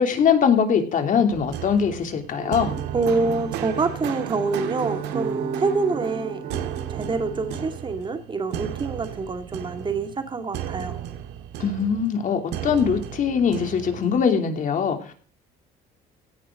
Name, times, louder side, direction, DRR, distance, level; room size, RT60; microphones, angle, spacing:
voice 1, 0.0-2.7 11.6-15.1, left 7 dB, 50° left, 5 dB, 2.8 m, -22 dB
sound 1, 1.3-14.2, right 11 dB, 90° right, 1.7 m, -35 dB
sound 2, 2.4-7.7, right 6 dB, 65° right, 4.2 m, -34 dB
voice 2, 2.9-6.4 6.9-11.0, right 3 dB, 30° right, 6 dB, 2.3 m, -26 dB
16.5 x 10.5 x 3.8 m, 0.41 s
cardioid pair, 110°, 17 cm